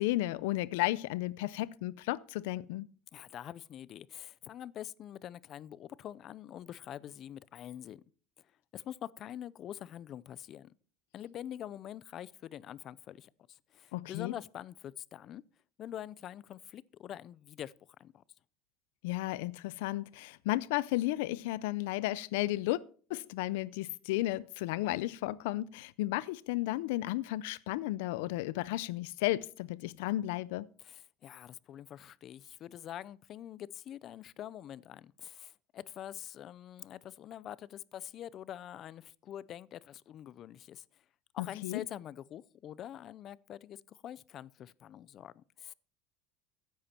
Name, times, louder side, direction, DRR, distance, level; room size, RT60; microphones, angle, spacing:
voice 1, 0.0-2.9 13.9-14.3 19.0-22.8 23.1-30.7 41.4-41.8, left 17 dB, 90° left, 0.5 m, -33 dB
voice 2, 3.1-8.0 8.4-8.5 8.7-10.7 11.1-15.4 15.8-18.2 30.8-41.0 41.3-45.7, left 11 dB, 40° left, 0.5 m, -45 dB
15.0 x 10.5 x 4.4 m
cardioid pair, 150°, 0 cm